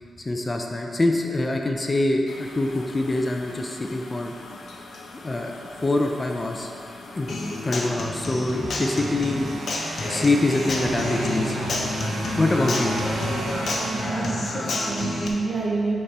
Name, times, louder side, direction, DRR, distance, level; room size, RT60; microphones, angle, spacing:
voice 1, 0.3-4.3 5.2-5.5 5.8-6.7 7.2-7.3 7.6-9.7 10.1-11.6 12.4-12.9, left 2 dB, 20° left, 2 dB, 0.4 m, -24 dB
sound 1, 2.3-7.9, left 3 dB, 90° left, 0.8 m, -43 dB
Human voice / Acoustic guitar, 7.3-15.3, left 2 dB, 55° left, 0.9 m, -29 dB
sound 2, 8.1-14.8, right 3 dB, 85° right, 0.6 m, -33 dB
voice 2, 13.9-16.0, right 3 dB, 35° right, 0 dB, 0.7 m, -28 dB
10.5 x 4.2 x 3.3 m, 2.4 s
wide cardioid pair, 150°, 0 cm